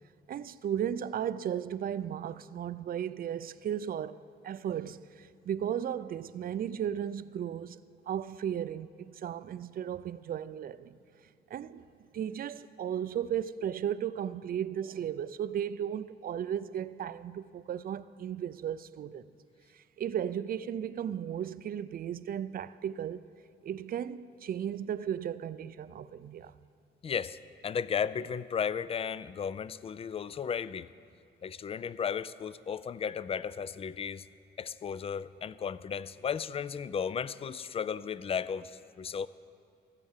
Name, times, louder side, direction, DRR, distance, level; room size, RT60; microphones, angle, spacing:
voice 1, 0.3-7.8 8.1-11.0 11.5-11.9 12.1-19.3 19.7-23.3 23.6-26.5, right 9 dB, 45° right, 0.4 m, -35 dB
voice 2, 27.0-30.9 31.4-34.3 34.6-39.3, left 7 dB, 30° left, 0.4 m, -34 dB
15.0 x 7.5 x 7.3 m
cardioid pair, 90°, 20 cm